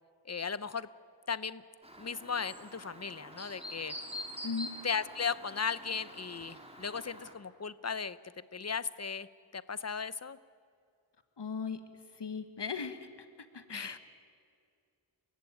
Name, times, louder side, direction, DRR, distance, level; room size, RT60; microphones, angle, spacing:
voice 1, 0.3-0.9 1.3-1.6 2.0-3.9 4.8-8.2 8.5-9.3 9.5-10.4 13.7-14.0, left 6 dB, 35° left, 16 dB, 0.8 m, -36 dB
Chirp tweet, 1.8-7.3, equal, 15° right, 3.0 m, -46 dB
voice 2, 4.4-4.8 11.4-11.8 12.2-13.1 13.5-14.0, left 5 dB, 60° left, 9 dB, 1.4 m, -37 dB
29.0 x 16.0 x 9.3 m, 2.3 s
wide cardioid pair, 85°, 46 cm